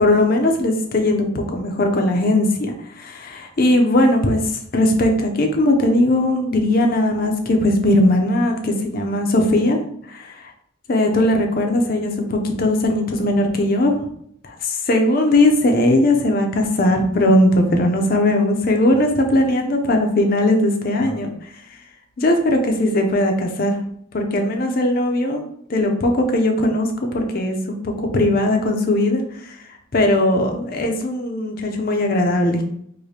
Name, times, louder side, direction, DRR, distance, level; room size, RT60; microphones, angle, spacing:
voice 1, 0.0-4.4 4.7-9.8 10.1-10.5 10.9-13.9 14.4-21.3 22.2-23.8 24.1-25.4 25.7-29.5 29.9-32.6, left 1 dB, 45° left, 4 dB, 0.5 m, -19 dB
4.8 x 2.2 x 2.8 m, 0.69 s
head